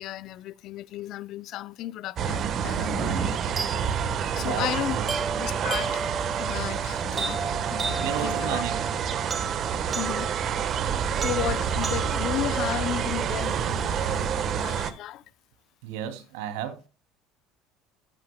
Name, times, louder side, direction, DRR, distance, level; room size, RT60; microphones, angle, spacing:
voice 1, 0.0-4.0 4.3-5.0 5.4-6.1 6.4-7.4 7.7-8.6 10.0-10.3 11.2-15.2, left 13 dB, 55° left, 0.6 m, -34 dB
sound 1, 2.2-14.9, right 7 dB, 45° right, 1.2 m, -28 dB
sound 2, 3.6-13.6, right 4 dB, 25° right, 1.4 m, -35 dB
voice 2, 4.3-5.1 8.0-9.0 15.8-16.9, right 10 dB, 85° right, 2.6 m, -34 dB
14.0 x 11.0 x 2.2 m
supercardioid pair, 120°, 0 cm